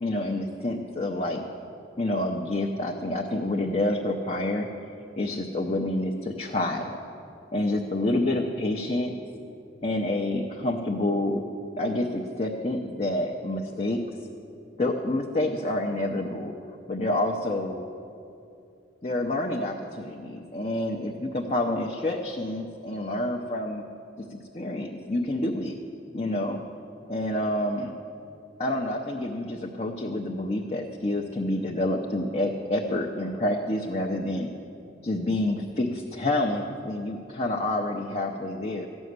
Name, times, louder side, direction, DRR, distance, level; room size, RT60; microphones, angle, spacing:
voice 1, 0.0-1.4 2.0-7.0 7.5-9.1 9.8-11.4 11.8-14.0 14.8-17.8 19.0-23.8 24.3-25.7 26.1-26.6 27.1-27.9 28.6-34.5 35.0-38.9, left 1 dB, 35° left, 0 dB, 0.7 m, -28 dB
14.0 x 6.3 x 9.4 m, 2.6 s
head